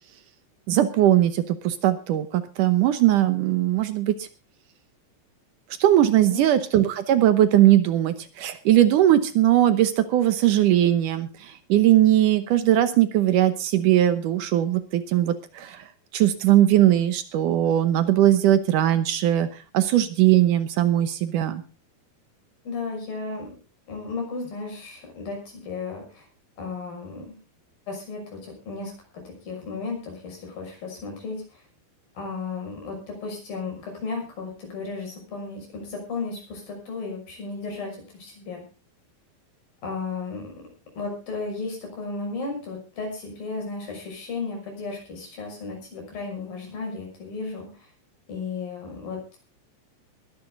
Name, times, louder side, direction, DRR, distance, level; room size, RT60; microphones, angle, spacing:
voice 1, 0.7-4.3 5.8-15.9 16.1-19.5 19.7-21.6, right 12 dB, 70° right, 11 dB, 2.3 m, -20 dB
voice 2, 22.6-23.5 23.9-26.3 26.6-27.3 27.9-31.6 32.2-38.6 39.8-40.6 41.0-47.9 48.3-49.4, left 4 dB, 75° left, 2 dB, 7.7 m, -34 dB
21.5 x 10.5 x 3.8 m, 0.32 s
omnidirectional pair, 4.2 m